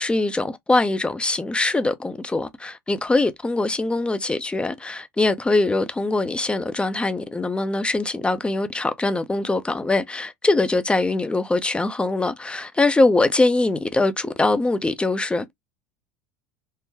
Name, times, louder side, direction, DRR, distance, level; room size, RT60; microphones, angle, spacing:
voice 1, 0.0-15.5, left 2 dB, 10° left, 0.6 m, -22 dB
3.8 x 2.1 x 2.8 m
hypercardioid pair, 85°, 9 cm